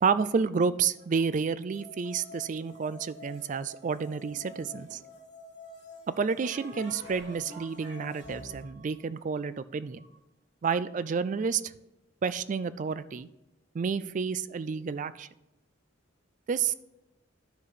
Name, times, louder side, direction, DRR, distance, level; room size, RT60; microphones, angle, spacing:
voice 1, 0.0-5.0 6.1-10.1 10.6-11.7 12.2-13.3 13.7-15.3 16.5-16.7, right 5 dB, 40° right, 15 dB, 0.3 m, -30 dB
sound 1, 1.7-8.6, left 2 dB, 60° left, 1.7 m, -49 dB
sound 2, 4.3-5.1 6.4-10.1, right 2 dB, 75° right, 3.1 m, -49 dB
12.5 x 4.7 x 4.1 m, 0.97 s
head